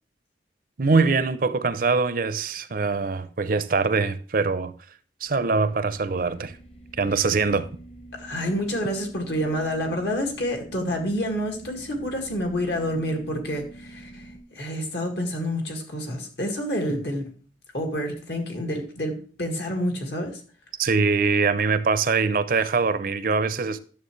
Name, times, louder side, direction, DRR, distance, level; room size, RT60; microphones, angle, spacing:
voice 1, 0.8-4.7 5.2-6.5 7.0-7.7 20.8-23.8, right 4 dB, 50° right, 0.5 m, -23 dB
sound 1, 5.2-14.4, right 2 dB, 30° left, 1.0 m, -46 dB
voice 2, 8.2-17.3 17.7-20.4, equal, 65° left, 2.0 m, -28 dB
11.0 x 7.0 x 3.2 m
head